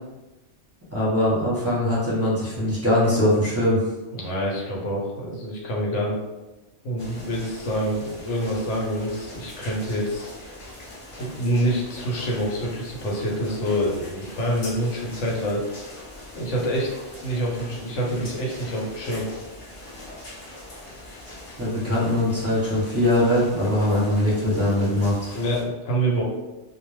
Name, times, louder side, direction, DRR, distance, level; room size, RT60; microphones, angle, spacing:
voice 1, 0.9-3.8 21.6-25.2, left 1 dB, 15° right, -8 dB, 0.6 m, -21 dB
voice 2, 4.1-6.2 6.8-10.3 11.2-15.6 16.3-16.9 17.2-19.2 25.3-26.2, right 1 dB, 85° left, -3 dB, 1.1 m, -26 dB
sound 1, 7.0-25.6, left 1 dB, 40° left, 0.4 m, -42 dB
2.4 x 2.0 x 3.1 m, 1.1 s
omnidirectional pair, 1.2 m